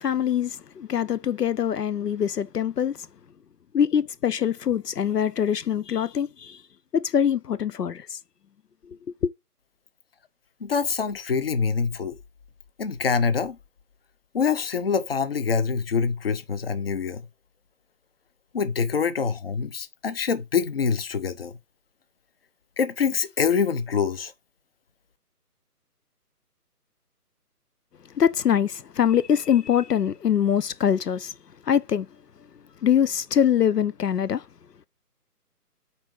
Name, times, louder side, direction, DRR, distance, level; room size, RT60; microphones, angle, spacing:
voice 1, 0.0-3.0 3.7-6.6 6.9-8.2 9.2-9.3 28.2-31.3 31.7-32.1 32.8-34.4, left 9 dB, 80° left, 0.7 m, -23 dB
voice 2, 10.6-12.2 12.8-13.6 14.3-17.2 18.5-21.5 22.8-24.3, left 6 dB, 40° left, 0.8 m, -25 dB
8.5 x 4.0 x 6.3 m
figure-of-eight pair, 145°, 47 cm